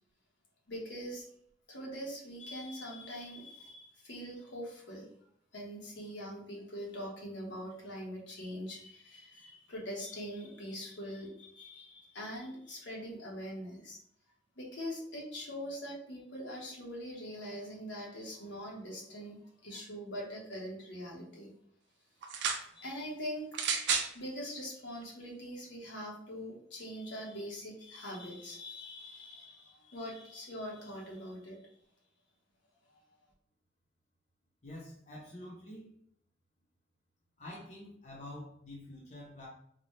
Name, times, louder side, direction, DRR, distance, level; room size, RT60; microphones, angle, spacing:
voice 1, 0.7-1.2 1.7-5.1 5.5-14.0 14.6-21.5 22.3-22.4 22.7-23.5 24.1-31.6, equal, 80° left, -3 dB, 1.3 m, -43 dB
sound 1, 22.2-22.7 23.5-24.1 25.0-25.1, right 6 dB, 70° right, 0.4 m, -31 dB
voice 2, 34.6-35.9 37.4-39.5, left 1 dB, 40° left, -4 dB, 0.8 m, -47 dB
4.0 x 2.3 x 3.2 m, 0.68 s
head